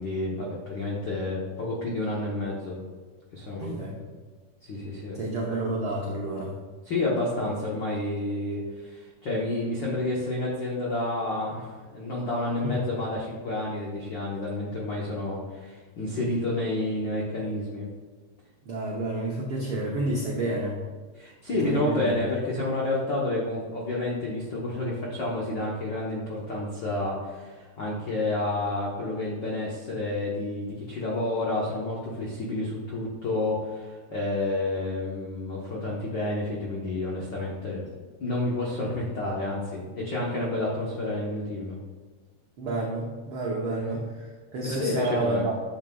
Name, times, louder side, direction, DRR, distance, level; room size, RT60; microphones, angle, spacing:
voice 1, 0.0-2.7 3.3-3.7 4.6-5.2 6.8-17.8 21.1-37.8 38.2-41.7 44.6-45.5, left 2 dB, 80° left, -4 dB, 1.0 m, -30 dB
voice 2, 3.6-4.0 5.1-6.5 12.6-12.8 18.6-20.9 21.6-22.1 42.6-45.6, right 2 dB, 90° right, -2 dB, 1.2 m, -30 dB
10.5 x 7.4 x 2.3 m, 1.4 s
omnidirectional pair, 3.9 m